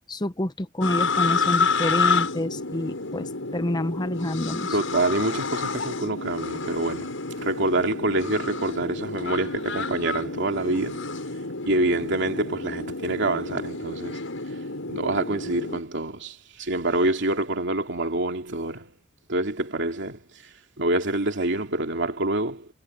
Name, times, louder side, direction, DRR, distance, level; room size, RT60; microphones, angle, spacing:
voice 1, 0.1-4.7, left 1 dB, 20° left, 0.8 m, -28 dB
sound 1, 0.8-15.8, left 4 dB, 75° left, 7.3 m, -29 dB
voice 2, 4.7-11.1 11.7-14.2 14.9-18.9 19.3-20.2 20.8-22.7, right 2 dB, 60° right, 2.9 m, -26 dB
head